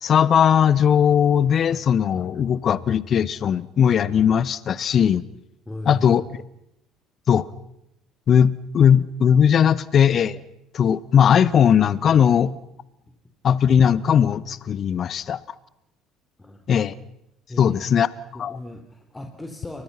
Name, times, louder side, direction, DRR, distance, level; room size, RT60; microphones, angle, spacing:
voice 1, 0.0-5.2 5.9-6.2 7.3-7.4 8.3-10.4 10.7-12.5 13.4-15.4 16.7-17.0 17.6-18.1 18.4-18.6, left 8 dB, 45° left, 1.2 m, -18 dB
voice 2, 5.7-6.1 16.4-16.6 17.5-18.0 18.3-19.8, left 1 dB, 15° left, 4.1 m, -37 dB
30.0 x 24.5 x 5.8 m
hypercardioid pair, 60°, 0 cm